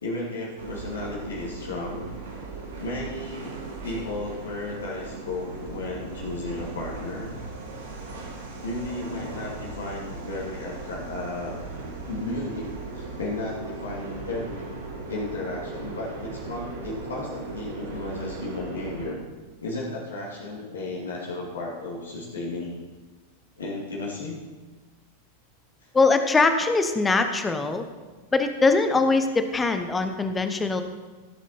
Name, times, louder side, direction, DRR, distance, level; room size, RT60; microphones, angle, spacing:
voice 1, 0.0-2.1 2.8-3.5 3.8-7.3 8.6-11.6 12.0-14.7 15.1-19.2 19.6-22.7 23.6-24.4 25.8-25.9 28.8-29.0, left 2 dB, 70° left, -3 dB, 2.2 m, -34 dB
sound 1, 0.6-19.1, right 3 dB, 65° right, 3.4 m, -38 dB
voice 2, 25.9-27.8 28.3-30.8, left 3 dB, 15° left, 8 dB, 0.9 m, -22 dB
15.0 x 7.3 x 4.2 m, 1.3 s
figure-of-eight pair, 90°, 0 cm